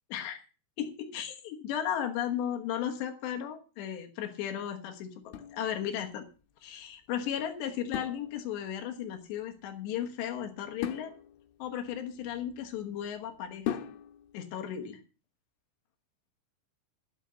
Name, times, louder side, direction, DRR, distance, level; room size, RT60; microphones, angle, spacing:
voice 1, 0.8-6.2 6.6-11.1 11.6-13.8 14.3-15.0, left 9 dB, 70° left, 4 dB, 3.2 m, -35 dB
sound 1, 5.3-6.3 7.9-8.8 10.8-12.8 13.7-14.4, left 10 dB, 85° left, 3.6 m, -40 dB
12.5 x 7.2 x 6.8 m, 0.35 s
omnidirectional pair, 5.7 m